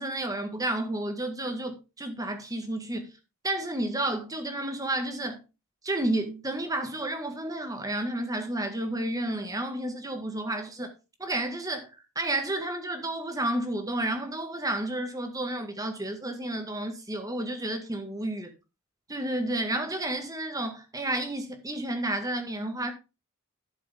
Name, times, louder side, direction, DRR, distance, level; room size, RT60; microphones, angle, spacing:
voice 1, 0.0-3.1 3.4-5.4 5.8-10.9 11.2-11.9 12.2-18.5 19.1-22.9, right 1 dB, 15° right, 1.8 m, -31 dB
12.5 x 6.8 x 3.6 m
head